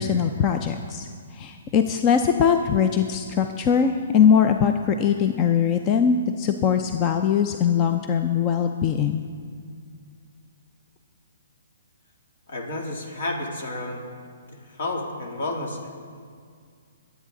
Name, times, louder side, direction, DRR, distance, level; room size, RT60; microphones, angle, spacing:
voice 1, 0.0-9.2, left 7 dB, 25° left, 6 dB, 0.5 m, -21 dB
voice 2, 12.5-14.0 14.7-15.9, left 2 dB, 65° left, 1 dB, 2.6 m, -31 dB
22.0 x 8.3 x 3.8 m, 2.2 s
hypercardioid pair, 150°, 0 cm